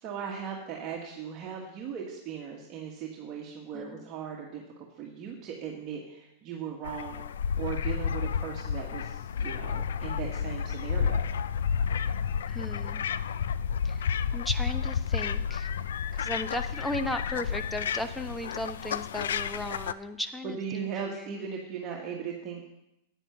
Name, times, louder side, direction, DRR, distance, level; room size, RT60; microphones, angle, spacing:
voice 1, 0.0-7.2 7.6-11.3 20.4-22.7, right 7 dB, 35° right, -1 dB, 1.6 m, -38 dB
voice 2, 3.7-4.0 12.5-13.1 13.8-15.7 16.1-21.4, left 1 dB, 5° left, 9 dB, 0.9 m, -36 dB
sound 1, 6.8-19.9, left 7 dB, 80° left, 0.4 m, -31 dB
9.8 x 9.3 x 5.9 m, 0.85 s
hypercardioid pair, 120°, 0 cm